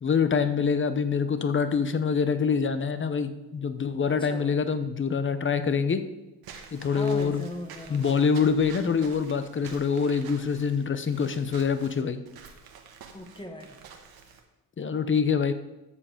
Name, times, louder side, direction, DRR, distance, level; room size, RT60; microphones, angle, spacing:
voice 1, 0.0-6.0 6.7-7.4 7.9-12.2 14.8-15.5, left 6 dB, 35° left, 10 dB, 0.8 m, -25 dB
voice 2, 4.2-4.7 6.8-8.1 13.1-13.8, left 1 dB, 15° left, 4 dB, 1.5 m, -40 dB
Walk footsteps / Squeak, 6.4-14.4, right 6 dB, 80° right, 1.4 m, -48 dB
13.5 x 5.0 x 5.1 m, 1.0 s
cardioid pair, 100°, 36 cm